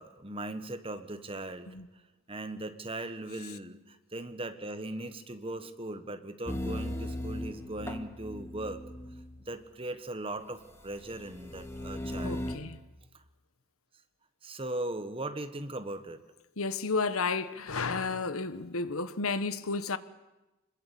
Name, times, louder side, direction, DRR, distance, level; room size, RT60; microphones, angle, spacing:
voice 1, 0.0-1.7 2.3-8.8 9.5-12.4 14.4-16.2, right 1 dB, 25° right, 1.4 m, -39 dB
sound 1, 6.5-9.5 10.8-12.6, left 1 dB, 10° left, 1.7 m, -37 dB
voice 2, 12.0-12.8 16.6-20.0, left 4 dB, 70° left, 1.2 m, -32 dB
26.5 x 21.5 x 8.5 m
head